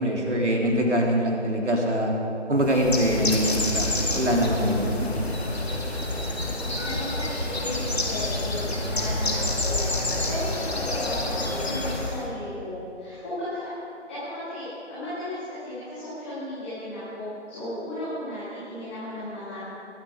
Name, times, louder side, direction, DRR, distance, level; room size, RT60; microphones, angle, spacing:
voice 1, 0.0-2.1 2.5-5.1, equal, 70° right, -1 dB, 3.1 m, -23 dB
Bird, 2.6-12.3, left 2 dB, 55° left, 2.1 m, -28 dB
voice 2, 6.4-13.7 14.1-19.6, left 1 dB, 10° left, -14 dB, 1.9 m, -35 dB
21.5 x 8.9 x 4.9 m, 2.9 s
figure-of-eight pair, 165°, 37 cm